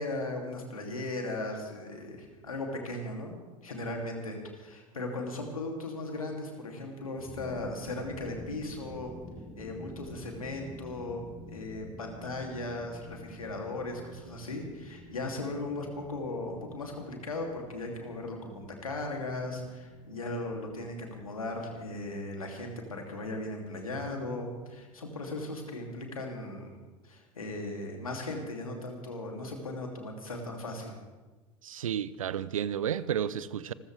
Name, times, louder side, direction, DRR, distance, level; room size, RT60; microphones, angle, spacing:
voice 1, 0.0-3.3 3.6-9.1 9.6-26.8 27.0-31.0, left 2 dB, 85° left, 2.9 m, -37 dB
sound 1, 7.1-25.9, left 1 dB, ahead, 3.7 m, -50 dB
voice 2, 31.6-33.7, right 9 dB, 75° right, 0.6 m, -32 dB
26.5 x 14.0 x 3.5 m
figure-of-eight pair, 80°, 18 cm